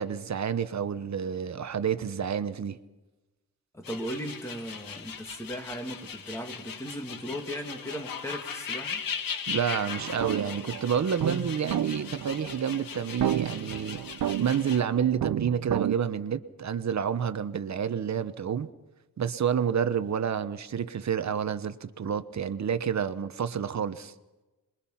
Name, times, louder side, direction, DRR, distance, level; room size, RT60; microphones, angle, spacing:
voice 1, 0.0-2.8 9.5-14.0 14.4-18.7 19.2-24.1, right 8 dB, 50° right, 1.1 m, -29 dB
voice 2, 3.7-9.0, equal, 10° left, 2.6 m, -37 dB
sound 1, 3.8-14.8, left 6 dB, 75° left, 1.7 m, -39 dB
sound 2, 9.9-16.0, right 10 dB, 75° right, 0.7 m, -32 dB
27.0 x 22.5 x 5.8 m
wide cardioid pair, 150°, 35 cm